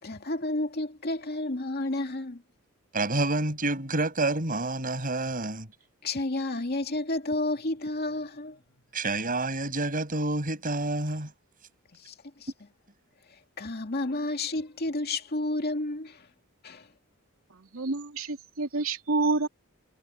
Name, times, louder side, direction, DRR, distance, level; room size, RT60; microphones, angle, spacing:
voice 1, 0.0-2.4 6.0-8.6 11.9-12.1 12.4-12.5 13.6-16.3 16.6-16.9, left 2 dB, 50° left, 2.4 m, -31 dB
voice 2, 2.9-5.7 8.9-11.3, right 2 dB, 40° right, 7.2 m, -28 dB
voice 3, 17.5-19.5, right 3 dB, 70° right, 2.7 m, -28 dB
head